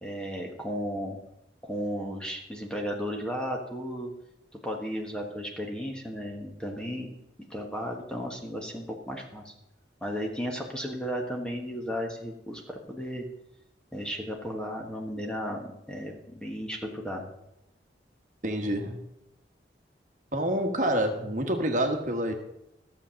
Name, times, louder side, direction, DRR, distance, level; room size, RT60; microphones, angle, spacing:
voice 1, 0.0-1.2 1.6-4.1 4.6-7.2 7.5-9.5 10.0-13.3 13.9-17.2, equal, 5° left, 0 dB, 1.3 m, -34 dB
voice 2, 18.4-19.0 20.3-22.3, right 1 dB, 45° right, 4 dB, 1.4 m, -27 dB
13.0 x 7.4 x 6.4 m, 0.84 s
head